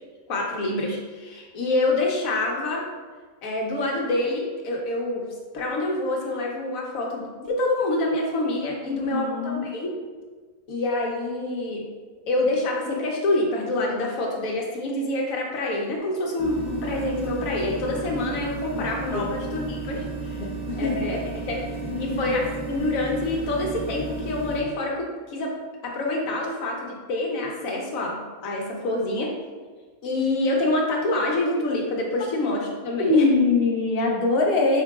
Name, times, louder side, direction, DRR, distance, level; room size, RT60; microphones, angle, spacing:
voice 1, 0.3-2.8 3.4-5.3 5.5-9.9 10.7-11.9 12.3-20.4 20.8-21.2 21.5-25.5 25.8-29.3 30.0-33.5, left 2 dB, 75° left, -1 dB, 1.2 m, -26 dB
voice 2, 8.8-9.7 19.1-19.6 20.4-21.1 21.8-22.4 33.0-34.8, left 3 dB, 55° left, -1 dB, 0.7 m, -24 dB
sound 1, 16.4-24.6, right 3 dB, 5° right, 0.6 m, -33 dB
4.7 x 3.7 x 2.3 m, 1.4 s
omnidirectional pair, 1.5 m